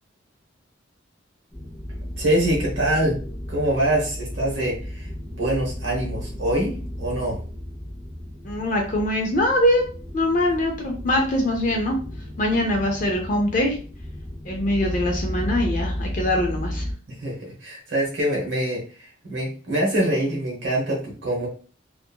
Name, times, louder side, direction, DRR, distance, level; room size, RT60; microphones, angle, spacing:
sound 1, 1.5-16.9, equal, 5° right, 0.8 m, -34 dB
voice 1, 2.2-3.2 3.5-6.7 7.0-7.4 17.1-21.5, right 1 dB, 60° right, -3 dB, 0.9 m, -24 dB
voice 2, 8.4-9.8 10.1-12.0 12.4-13.8 14.4-16.9, left 1 dB, 40° left, 2 dB, 0.4 m, -22 dB
2.7 x 2.4 x 2.2 m, 0.39 s
head